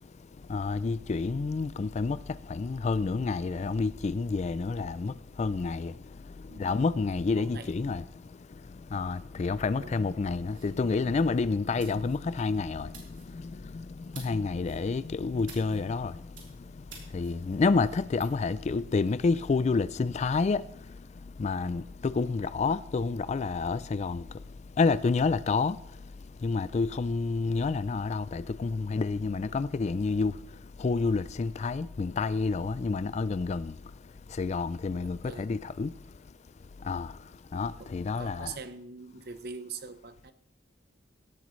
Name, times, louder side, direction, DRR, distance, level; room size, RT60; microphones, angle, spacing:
voice 1, 0.0-36.3 36.6-38.6, left 4 dB, 35° left, 0.3 m, -30 dB
voice 2, 7.3-7.7 9.8-10.0 34.9-35.5 37.8-37.9 38.2-40.3, right 5 dB, 55° right, 0.8 m, -43 dB
sound 1, 10.4-18.3, right 5 dB, 75° right, 3.9 m, -54 dB
16.5 x 12.0 x 3.2 m
head